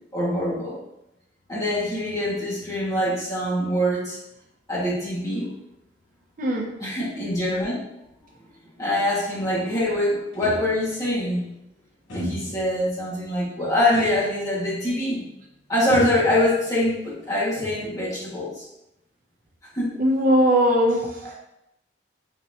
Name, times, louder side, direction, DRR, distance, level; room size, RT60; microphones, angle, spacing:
voice 1, 0.1-0.8 1.5-4.2 4.7-5.5 6.8-7.8 8.8-11.4 12.1-15.2 15.7-18.7 19.7-19.9 21.2-21.3, left 1 dB, 20° left, -8 dB, 1.7 m, -24 dB
voice 2, 6.4-6.7 20.0-21.3, equal, 50° right, 0 dB, 0.6 m, -20 dB
sound 1, 10.3-11.0 12.1-12.7 13.9-14.3 14.6-14.7 15.9-16.9 17.3-18.1, left 1 dB, 85° left, 1.6 m, -34 dB
4.4 x 4.0 x 2.8 m, 0.86 s
head